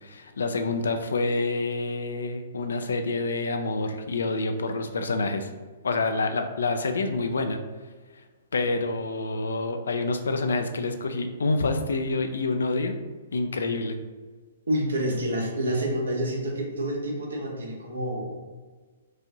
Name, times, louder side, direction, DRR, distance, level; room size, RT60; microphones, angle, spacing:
voice 1, 0.0-5.5 5.8-7.6 8.5-12.9 13.3-14.0, left 3 dB, 70° left, 7 dB, 0.4 m, -27 dB
voice 2, 14.7-18.4, equal, 70° right, -1 dB, 0.9 m, -28 dB
4.7 x 2.5 x 2.8 m, 1.4 s
figure-of-eight pair, 115°, 0 cm